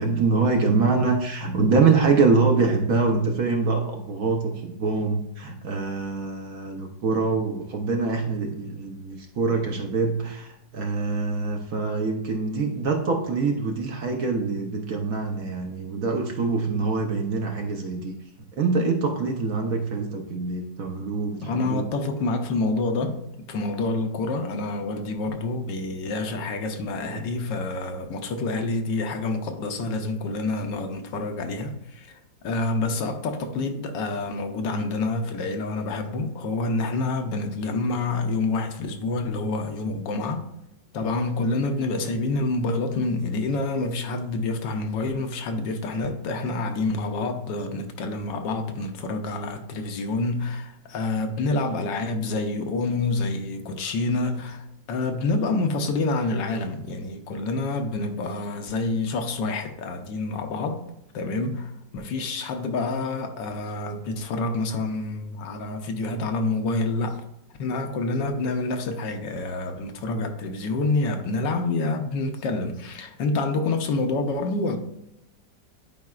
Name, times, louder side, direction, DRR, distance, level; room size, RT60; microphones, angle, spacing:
voice 1, 0.0-18.1 18.5-21.8, right 4 dB, 60° right, 1.0 m, -24 dB
voice 2, 21.4-32.2 32.4-40.4 40.9-60.8 61.1-67.2 67.6-74.8, left 3 dB, 75° left, 1.4 m, -27 dB
10.5 x 4.7 x 2.4 m
omnidirectional pair, 2.0 m